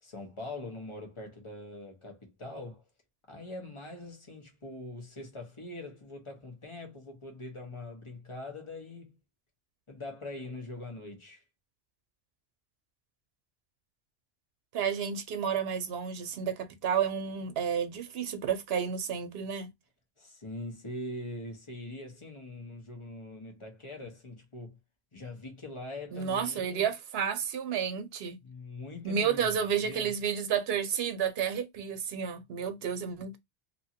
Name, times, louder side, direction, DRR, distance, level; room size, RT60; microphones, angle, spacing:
voice 1, 0.0-2.8 3.3-9.1 9.9-11.4 20.2-24.8 25.1-26.8 28.4-30.1, left 2 dB, 30° left, 0.9 m, -43 dB
voice 2, 14.7-19.7 26.1-28.4 29.0-33.4, right 7 dB, 80° right, 0.9 m, -31 dB
2.7 x 2.5 x 2.7 m
omnidirectional pair, 1.0 m